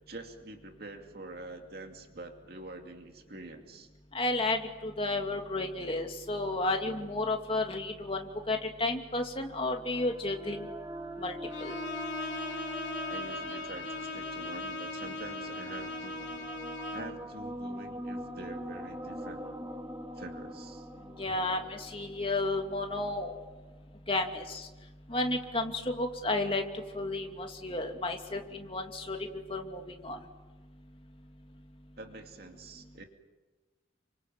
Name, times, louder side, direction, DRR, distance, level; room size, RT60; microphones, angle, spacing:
voice 1, 0.1-3.9 13.1-16.3 16.9-19.4 20.1-20.9 32.0-33.0, right 2 dB, 55° right, 4 dB, 2.6 m, -46 dB
voice 2, 4.1-10.7 11.2-11.3 11.6-11.7 21.2-23.4 24.1-24.7 25.1-26.6 26.9-29.2 29.5-30.2, left 2 dB, 30° left, 3 dB, 2.7 m, -32 dB
sound 1, 9.6-23.2, equal, 15° right, 1.7 m, -44 dB
Bowed string instrument, 11.5-17.2, left 2 dB, 75° left, 3.3 m, -38 dB
29.5 x 25.5 x 7.7 m, 1.2 s
head